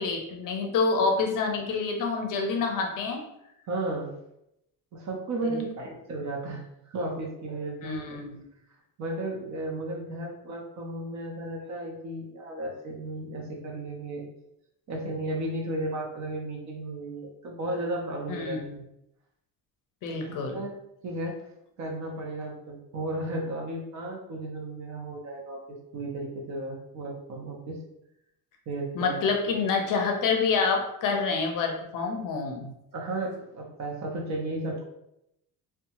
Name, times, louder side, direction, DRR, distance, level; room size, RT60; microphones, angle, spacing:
voice 1, 0.0-3.2 5.4-5.5 7.8-8.5 18.3-18.8 20.0-20.6 28.9-32.7, left 4 dB, 55° left, 2 dB, 0.5 m, -27 dB
voice 2, 3.7-4.1 4.9-8.1 9.0-14.2 14.9-18.6 20.2-20.7 21.0-21.4 21.8-25.6 25.9-27.8 28.7-29.2 32.9-34.8, right 2 dB, 45° right, 0 dB, 0.6 m, -34 dB
2.7 x 2.2 x 2.8 m, 0.81 s
cardioid pair, 180°, 39 cm